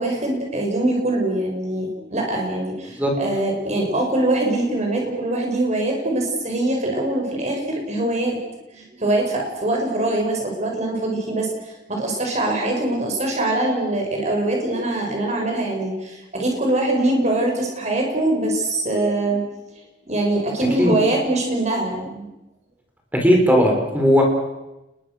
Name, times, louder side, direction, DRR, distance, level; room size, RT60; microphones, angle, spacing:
voice 1, 0.0-8.4 8.7-11.5 11.9-19.4 20.1-22.3, right 2 dB, 40° right, 1 dB, 6.8 m, -23 dB
voice 2, 23.1-24.2, equal, 10° right, 1 dB, 4.8 m, -16 dB
29.5 x 21.5 x 6.6 m, 1.0 s
head